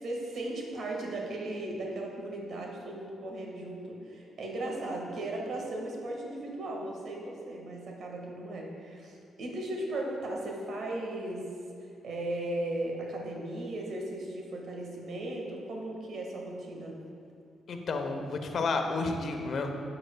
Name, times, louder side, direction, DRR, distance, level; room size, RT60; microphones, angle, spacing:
voice 1, 0.0-11.5 11.8-17.0, right 1 dB, 65° right, 0 dB, 1.5 m, -37 dB
voice 2, 17.7-19.7, left 3 dB, 65° left, 4 dB, 0.8 m, -31 dB
10.0 x 7.7 x 2.2 m, 2.4 s
supercardioid pair, 55°, 0 cm